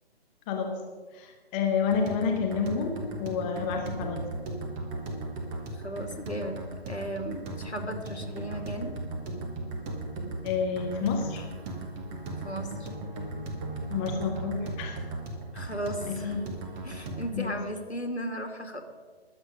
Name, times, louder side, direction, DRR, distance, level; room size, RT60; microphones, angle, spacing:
voice 1, 0.5-0.8 1.1-4.2 10.4-11.4 13.9-15.0 15.6-15.7 16.1-16.4 17.3-17.5, left 6 dB, 10° left, 2 dB, 0.7 m, -29 dB
sound 1, 1.9-17.3, right 2 dB, 15° right, 1.3 m, -37 dB
voice 2, 5.8-6.6 6.9-8.9 12.4-12.9 15.5-16.3 16.8-18.8, equal, 90° left, 5 dB, 2.3 m, -35 dB
21.0 x 7.9 x 5.1 m, 1.5 s
figure-of-eight pair, 140°, 32 cm